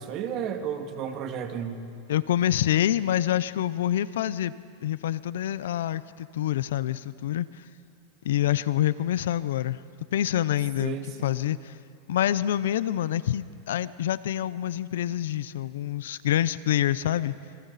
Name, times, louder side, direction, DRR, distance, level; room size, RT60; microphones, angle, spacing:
voice 1, 0.0-1.8 10.8-11.3, right 8 dB, 45° right, 5 dB, 2.1 m, -33 dB
voice 2, 2.1-4.5 4.8-7.6 8.2-9.8 10.1-11.0 11.2-11.8 12.1-17.3, left 12 dB, 85° left, 17 dB, 0.6 m, -26 dB
27.5 x 24.0 x 4.2 m, 2.4 s
supercardioid pair, 125°, 0 cm